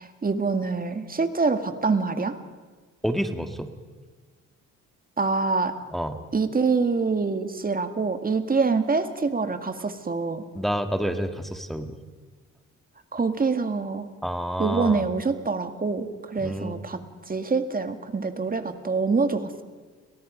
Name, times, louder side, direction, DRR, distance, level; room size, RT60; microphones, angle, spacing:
voice 1, 0.0-2.4 5.2-5.7 6.3-10.5 13.1-14.1 14.6-19.6, right 4 dB, 30° right, 8 dB, 2.1 m, -25 dB
voice 2, 3.0-3.7 5.9-6.2 10.6-12.0 14.2-15.0 16.4-16.8, equal, ahead, 6 dB, 1.9 m, -28 dB
29.5 x 24.0 x 5.2 m, 1.4 s
cardioid pair, 90°, 30 cm